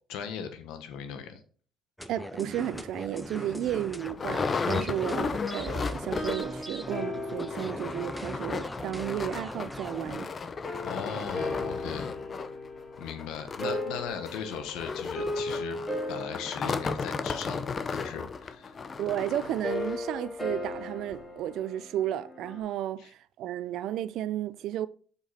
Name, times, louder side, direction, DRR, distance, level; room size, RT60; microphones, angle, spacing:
voice 1, 0.1-1.4 10.8-12.1 13.0-15.8 16.1-18.7 23.0-23.1, left 7 dB, 85° left, 1.3 m, -38 dB
sound 1, 2.0-10.3, equal, 5° left, 0.7 m, -40 dB
voice 2, 2.1-10.3 19.0-24.9, right 12 dB, 75° right, 0.5 m, -33 dB
sound 2, 2.7-2.9 3.4-3.5 3.7-6.6 6.9-7.0 7.3-20.1 20.7-20.8 21.1-21.2, left 5 dB, 35° left, 0.7 m, -35 dB
sound 3, 6.0-9.3 10.6-22.6, left 2 dB, 20° left, 3.9 m, -38 dB
7.0 x 5.5 x 4.2 m
cardioid pair, 90°, 0 cm